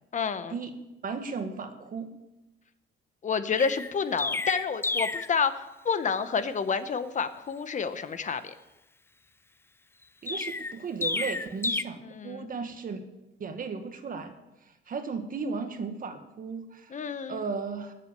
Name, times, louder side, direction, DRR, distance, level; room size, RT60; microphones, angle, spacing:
voice 1, 0.1-0.6 3.2-8.5 12.2-12.5 16.9-17.4, left 6 dB, 40° left, 11 dB, 1.0 m, -29 dB
voice 2, 1.0-2.1 10.2-13.0 13.4-14.3 14.9-16.9 17.3-17.9, right 5 dB, 45° right, 7 dB, 1.7 m, -35 dB
Chirp tweet, 3.6-5.3 10.3-11.8, left 3 dB, 10° left, 0.4 m, -31 dB
19.0 x 7.7 x 6.8 m, 0.99 s
cardioid pair, 130°, 20 cm